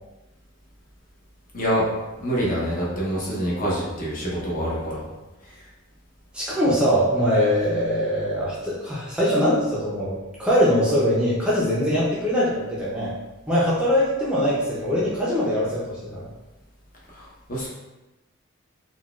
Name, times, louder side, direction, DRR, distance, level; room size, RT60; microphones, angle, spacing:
voice 1, 1.5-1.9 2.2-5.0 17.1-17.7, equal, 40° left, -5 dB, 0.8 m, -26 dB
voice 2, 6.3-13.1 13.5-16.2, equal, 5° right, -8 dB, 0.5 m, -22 dB
3.9 x 2.3 x 2.3 m, 1.1 s
head